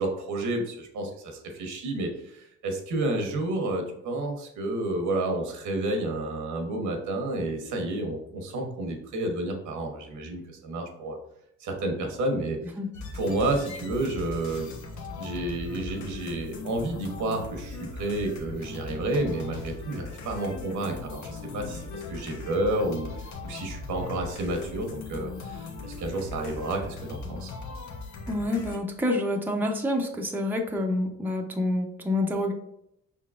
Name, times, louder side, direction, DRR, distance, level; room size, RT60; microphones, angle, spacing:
voice 1, 0.0-11.2 11.6-12.6 13.1-14.7 15.2-27.5, right 2 dB, 75° right, 3 dB, 1.1 m, -30 dB
sound 1, 12.9-28.8, left 3 dB, 70° left, 0.9 m, -39 dB
voice 2, 28.3-32.5, left 1 dB, 5° right, 2 dB, 0.7 m, -27 dB
5.4 x 3.7 x 2.4 m, 0.77 s
cardioid pair, 90°, 30 cm